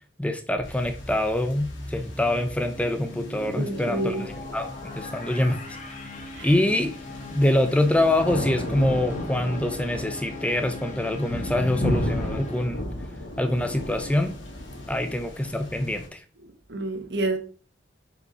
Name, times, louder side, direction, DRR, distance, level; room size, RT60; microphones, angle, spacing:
voice 1, 0.2-4.2 4.5-4.7 5.0-5.6 6.4-6.9 7.3-12.8 13.4-14.3 14.9-16.2, left 1 dB, 5° left, 0.7 m, -25 dB
sound 1, 0.6-16.1, left 1 dB, 85° left, 2.4 m, -35 dB
sound 2, 0.6-12.7, left 2 dB, 40° left, 1.9 m, -40 dB
voice 2, 3.5-4.2 6.3-6.5 16.4-17.4, right 2 dB, 60° right, 1.3 m, -29 dB
6.8 x 5.4 x 4.8 m
head